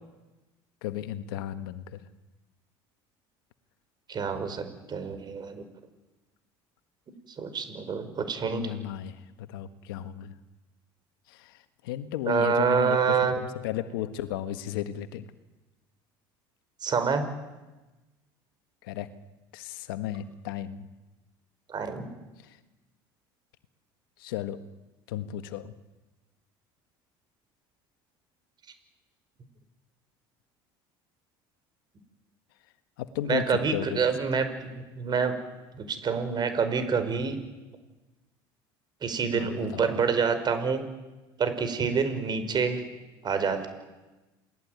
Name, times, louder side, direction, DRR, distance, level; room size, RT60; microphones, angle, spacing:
voice 1, 0.8-2.0 8.5-10.3 11.3-15.3 18.8-19.1 19.5-20.9 22.4-22.6 24.2-24.6 25.1-25.7 33.0-34.0 39.3-40.0, left 12 dB, 85° left, 11 dB, 1.5 m, -34 dB
voice 2, 4.1-5.7 7.4-8.7 12.3-13.3 16.8-17.2 21.7-22.1 33.3-35.3 35.7-37.4 39.0-40.8 41.4-42.8 43.2-43.7, right 5 dB, 40° right, 10 dB, 5.3 m, -27 dB
28.5 x 19.5 x 9.5 m, 1.1 s
supercardioid pair, 90°, 11 cm